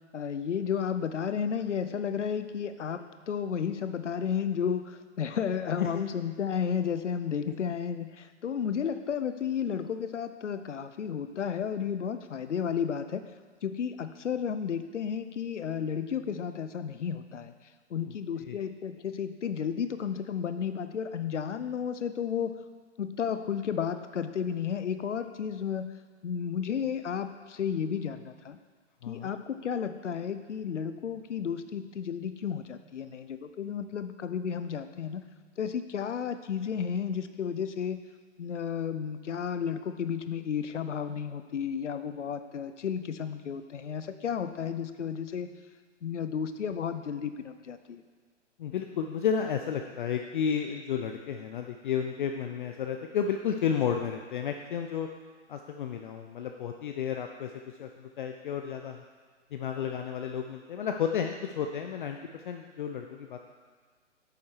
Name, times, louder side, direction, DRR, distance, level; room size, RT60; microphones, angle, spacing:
voice 1, 0.1-13.3 13.6-17.5 17.9-22.6 23.0-25.9 26.2-28.6 29.1-35.2 35.6-38.0 38.4-45.5 46.0-48.0, left 7 dB, 75° left, 10 dB, 0.8 m, -32 dB
voice 2, 29.0-29.3 48.6-55.1 55.5-57.5 57.8-59.0 59.5-62.2 62.5-63.4, left 7 dB, 45° left, 4 dB, 0.6 m, -32 dB
9.0 x 7.1 x 4.7 m, 1.5 s
figure-of-eight pair, 130°, 36 cm